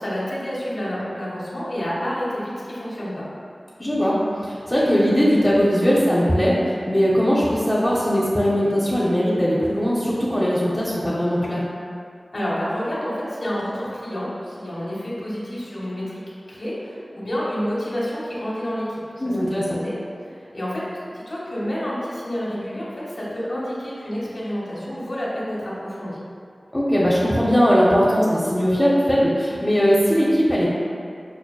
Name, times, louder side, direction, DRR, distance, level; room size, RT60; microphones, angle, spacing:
voice 1, 0.0-3.2 12.3-16.0 16.5-19.9 20.2-20.8 21.1-26.2, equal, 70° left, -7 dB, 1.1 m, -29 dB
voice 2, 3.8-4.1 4.4-11.6 19.2-19.8 26.7-30.7, equal, 10° left, -8 dB, 0.6 m, -19 dB
5.9 x 2.1 x 2.2 m, 2.3 s
wide cardioid pair, 45°, 0 cm